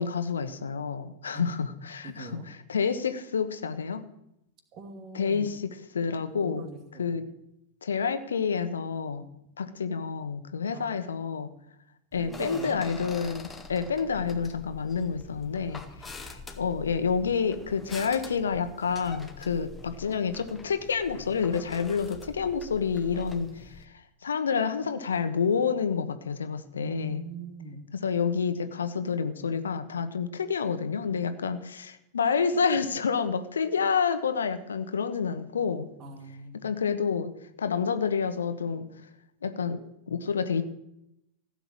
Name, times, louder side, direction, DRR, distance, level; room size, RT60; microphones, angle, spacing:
voice 1, 0.0-4.0 5.1-7.2 7.8-9.3 9.6-11.5 12.1-15.8 16.1-23.7 24.2-27.3 27.9-35.9 36.6-37.3 37.6-38.9 39.4-39.8 40.1-40.6, left 6 dB, 70° left, 10 dB, 1.3 m, -29 dB
voice 2, 2.0-2.5 4.7-5.5 6.2-7.2 10.7-11.1 12.1-12.8 26.8-27.9 36.0-36.7, right 3 dB, 35° right, 7 dB, 2.5 m, -42 dB
sound 1, 12.1-23.8, left 4 dB, 10° left, 1.9 m, -45 dB
16.0 x 7.9 x 8.7 m, 0.81 s
figure-of-eight pair, 90°, 0 cm